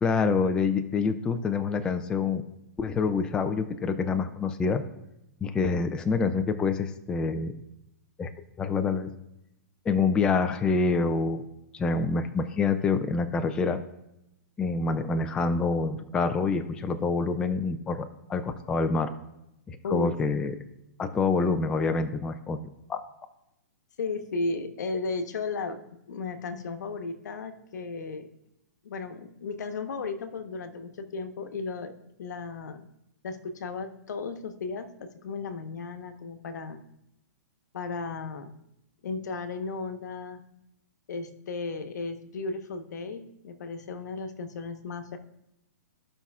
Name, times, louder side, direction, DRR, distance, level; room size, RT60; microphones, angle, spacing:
voice 1, 0.0-2.4 2.8-4.8 5.4-7.5 8.2-8.3 8.6-9.1 9.9-11.5 11.7-13.8 14.6-19.1 19.7-20.5 21.0-22.6 22.9-23.0, left 4 dB, 10° left, 8 dB, 0.4 m, -26 dB
voice 2, 24.0-25.8 26.1-28.3 28.8-32.9 33.2-36.8 37.7-38.5 39.0-40.4 41.1-45.2, left 4 dB, 75° left, 8 dB, 1.0 m, -35 dB
14.5 x 5.6 x 2.4 m, 0.86 s
hypercardioid pair, 155°, 10 cm